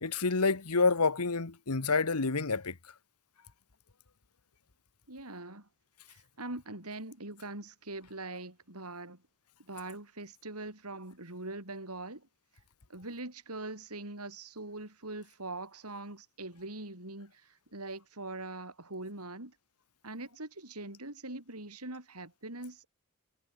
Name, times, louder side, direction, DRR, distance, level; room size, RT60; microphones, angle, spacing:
voice 1, 0.0-2.7, left 4 dB, 85° left, 1.4 m, -28 dB
voice 2, 5.1-5.7 6.1-9.2 9.7-12.3 12.9-19.5 20.0-22.9, right 2 dB, 80° right, 6.6 m, -42 dB
head